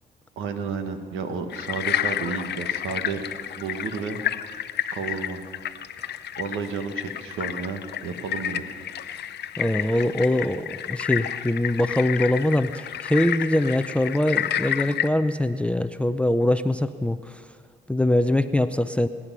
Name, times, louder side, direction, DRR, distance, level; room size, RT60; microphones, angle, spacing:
voice 1, 0.4-3.2 3.6-4.2 4.9-5.4 6.4-8.6, right 5 dB, 85° right, 7 dB, 1.4 m, -31 dB
sound 1, 1.5-15.1, left 10 dB, 55° left, 0.6 m, -30 dB
voice 2, 9.6-17.4 17.9-19.1, left 1 dB, 5° left, 11 dB, 0.5 m, -23 dB
22.0 x 10.0 x 6.1 m, 2.1 s
cardioid pair, 90°, 20 cm